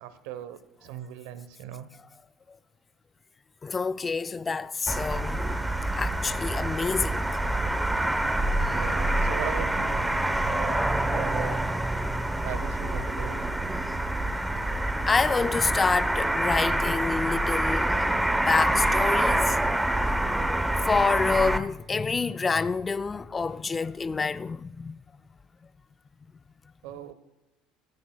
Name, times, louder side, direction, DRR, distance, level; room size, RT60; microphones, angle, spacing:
voice 1, 0.0-1.9 8.6-10.0 10.4-11.7 12.4-13.5 26.8-27.1, right 10 dB, 80° right, 1.0 m, -39 dB
voice 2, 3.6-5.6 5.9-7.4 12.3-12.4 15.0-17.9 18.5-19.6 20.9-24.9, left 4 dB, 25° left, 0.4 m, -27 dB
sound 1, 4.9-21.6, right 1 dB, 5° right, 0.9 m, -26 dB
16.0 x 14.5 x 2.3 m
supercardioid pair, 80°, 0 cm